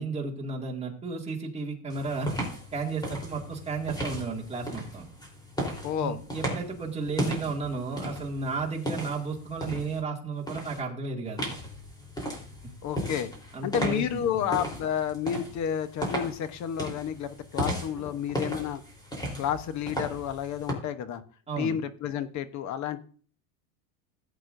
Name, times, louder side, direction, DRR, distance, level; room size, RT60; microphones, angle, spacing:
voice 1, 0.0-2.4 2.7-5.1 6.0-11.5 13.5-14.5 21.5-21.8, right 4 dB, 15° right, -1 dB, 2.1 m, -33 dB
sound 1, 1.9-10.0 10.5-10.8 11.4-20.7, equal, 10° left, 3.5 m, -36 dB
voice 2, 5.8-6.2 12.8-13.3 13.6-18.8 19.4-21.2 21.6-23.0, left 9 dB, 40° left, 12 dB, 0.9 m, -30 dB
16.5 x 8.2 x 2.6 m, 0.43 s
supercardioid pair, 140°, 45 cm